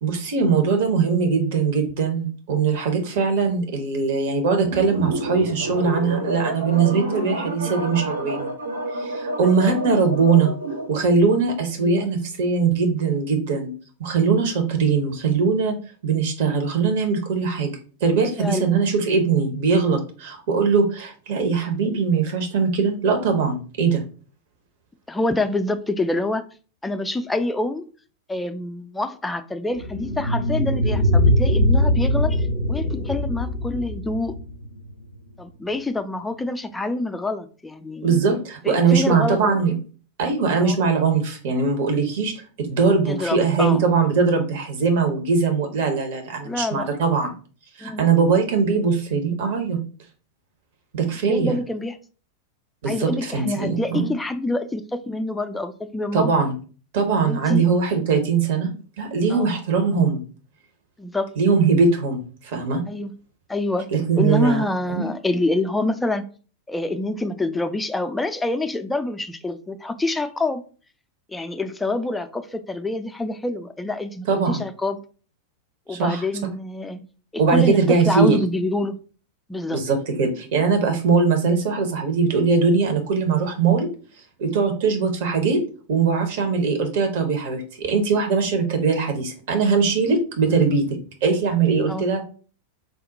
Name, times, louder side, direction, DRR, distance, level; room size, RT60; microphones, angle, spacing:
voice 1, 0.0-8.5 9.0-10.5 10.9-13.7 14.0-15.7 16.0-17.7 18.0-24.0 38.0-39.7 40.2-47.3 47.8-49.8 50.9-51.5 52.8-54.1 56.1-56.5 56.9-58.7 59.0-60.2 61.4-62.8 63.9-64.6 64.9-65.1 74.3-74.6 75.9-76.2 77.4-78.4 79.7-83.9 84.4-85.6 85.9-90.8 91.2-92.2, right 5 dB, 55° right, 5 dB, 0.8 m, -21 dB
sound 1, 4.6-11.1, right 1 dB, 80° right, 0.7 m, -29 dB
voice 2, 9.4-9.7 11.8-12.1 18.4-18.7 25.1-26.5 26.8-27.9 28.3-34.4 35.4-38.2 38.6-39.6 40.6-40.8 43.1-43.8 46.4-46.9 47.8-48.0 51.3-52.0 52.9-56.3 57.2-57.7 59.3-59.5 61.0-61.3 62.9-63.1 63.5-66.3 66.7-70.6 71.3-75.0 75.9-77.1 77.3-79.0 79.5-79.8 91.9-92.1, left 2 dB, 10° left, 9 dB, 0.3 m, -26 dB
sound 2, 29.7-34.6, left 4 dB, 35° left, 0.7 m, -32 dB
sound 3, 29.8-34.9, equal, 90° left, 0.4 m, -21 dB
3.6 x 2.1 x 4.0 m, 0.39 s
figure-of-eight pair, 90°, 0 cm